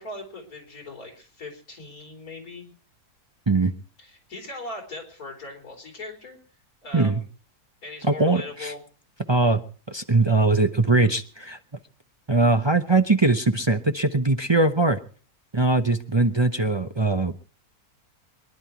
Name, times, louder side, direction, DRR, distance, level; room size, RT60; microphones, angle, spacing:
voice 1, 0.0-2.7 4.0-6.4 6.8-7.3 7.8-8.8, left 2 dB, 65° left, 2 dB, 4.6 m, -39 dB
voice 2, 8.0-8.7 9.3-9.6 9.9-11.6 12.3-15.0 15.5-17.3, right 3 dB, 25° right, 6 dB, 0.5 m, -21 dB
24.0 x 11.0 x 4.5 m, 0.42 s
omnidirectional pair, 1.6 m